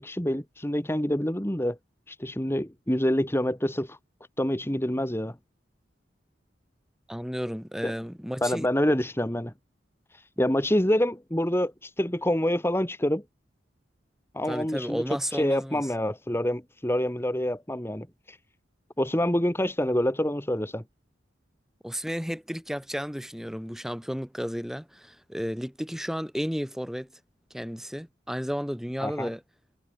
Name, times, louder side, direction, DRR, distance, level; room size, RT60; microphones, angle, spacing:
voice 1, 0.0-1.8 2.1-4.0 4.4-5.4 7.8-7.9 8.4-9.5 10.1-13.2 14.3-15.0 15.3-18.4 19.0-20.8 29.0-29.3, left 1 dB, 15° left, 2.1 m, -27 dB
voice 2, 7.1-8.7 14.4-15.8 21.8-27.1 27.5-29.4, equal, ahead, 3.0 m, -33 dB
head